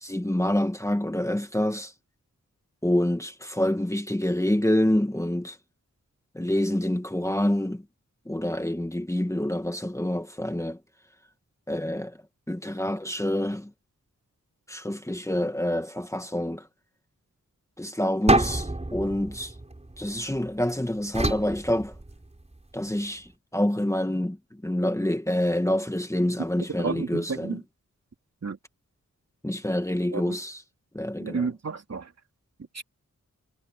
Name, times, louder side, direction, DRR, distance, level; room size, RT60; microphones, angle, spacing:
voice 1, 0.0-1.9 2.8-5.6 6.3-7.8 8.2-10.8 11.7-12.2 12.5-13.7 14.7-16.7 17.8-19.5 20.0-21.9 22.7-24.4 24.6-27.6 29.4-30.6 30.9-31.5, left 1 dB, 10° left, 1.8 m, -27 dB
sound 1, 18.3-20.5 21.1-22.5, right 2 dB, 20° right, 4.5 m, -27 dB
voice 2, 26.8-27.6 28.4-28.6 30.1-30.3 31.2-32.1 32.7-32.8, right 4 dB, 55° right, 3.2 m, -31 dB
wide cardioid pair, 90°, 32 cm